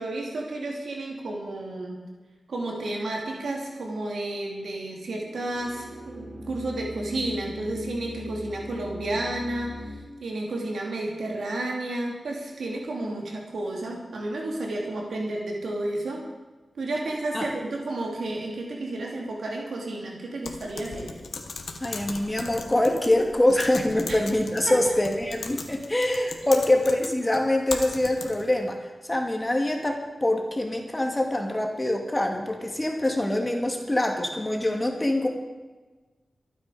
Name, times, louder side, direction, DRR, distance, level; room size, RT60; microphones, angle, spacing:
voice 1, 0.0-2.0 2.5-9.9 10.2-16.2 16.7-21.1 24.1-24.2 24.7-24.8, right 2 dB, 85° right, -1 dB, 3.1 m, -31 dB
sound 1, 4.9-9.9, left 1 dB, 60° right, 5.4 m, -39 dB
Typing, 20.4-28.6, left 4 dB, 85° left, 1.7 m, -38 dB
voice 2, 21.8-35.3, left 1 dB, 20° left, 2 dB, 2.4 m, -24 dB
25.5 x 9.2 x 5.1 m, 1.3 s
wide cardioid pair, 80°, 0 cm